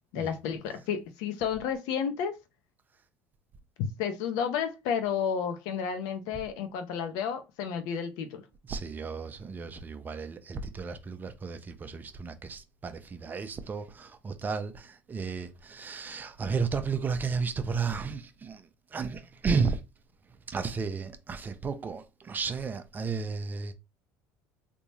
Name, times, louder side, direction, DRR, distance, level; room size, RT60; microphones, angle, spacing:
voice 1, 0.1-2.3 4.0-8.4, left 7 dB, 70° left, 0.9 m, -31 dB
voice 2, 8.7-18.6 18.9-19.8 20.5-23.7, right 5 dB, 30° right, 0.7 m, -33 dB
3.5 x 2.9 x 2.7 m
supercardioid pair, 90°, 6 cm